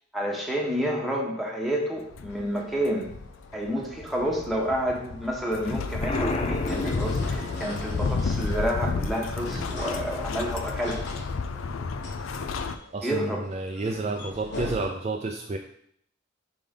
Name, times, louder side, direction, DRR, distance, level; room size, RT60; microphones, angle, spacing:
voice 1, 0.1-3.1 3.5-11.0 13.0-13.4, equal, ahead, -2 dB, 1.2 m, -29 dB
sound 1, 2.1-12.8, left 4 dB, 85° left, 0.5 m, -32 dB
sound 2, 2.3-14.9, left 1 dB, 60° left, 1.2 m, -41 dB
Explosion, 6.0-7.8, left 2 dB, 30° left, 0.5 m, -30 dB
voice 2, 12.9-15.6, right 3 dB, 35° right, 2 dB, 0.4 m, -30 dB
5.0 x 3.9 x 5.1 m, 0.68 s
head